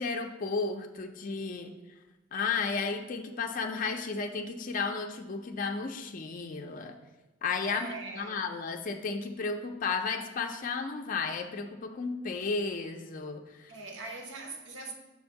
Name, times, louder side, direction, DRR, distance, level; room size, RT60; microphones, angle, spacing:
voice 1, 0.0-1.7 2.3-7.0 7.4-13.7, left 4 dB, 45° left, 0.4 m, -33 dB
voice 2, 7.6-8.5 13.7-14.9, right 3 dB, 70° right, 0.9 m, -42 dB
7.0 x 2.6 x 5.6 m
head